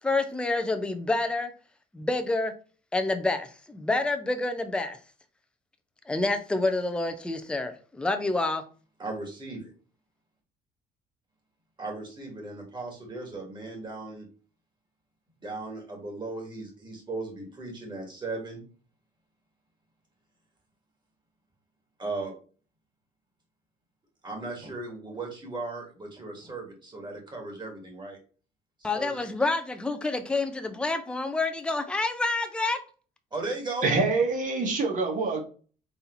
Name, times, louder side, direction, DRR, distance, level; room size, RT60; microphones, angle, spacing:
voice 1, 0.0-1.5 1.9-2.5 2.9-5.0 6.1-8.6 28.8-32.8, left 2 dB, 5° left, 0.6 m, -28 dB
voice 2, 9.0-9.7 11.8-14.3 15.4-18.6 22.0-22.3 24.2-28.2 28.8-29.3 33.3-33.9, right 3 dB, 25° right, 2.2 m, -37 dB
voice 3, 33.8-35.4, right 3 dB, 50° right, 1.6 m, -25 dB
4.2 x 2.8 x 3.9 m
cardioid pair, 110°, 17 cm